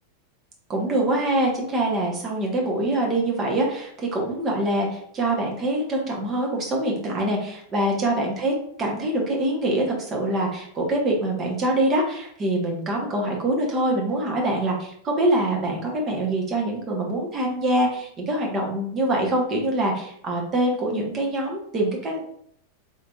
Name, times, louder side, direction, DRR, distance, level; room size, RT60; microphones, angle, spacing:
voice 1, 0.7-22.2, right 1 dB, 25° right, 0 dB, 1.2 m, -24 dB
4.6 x 3.3 x 2.5 m, 0.66 s
figure-of-eight pair, 90°, 0 cm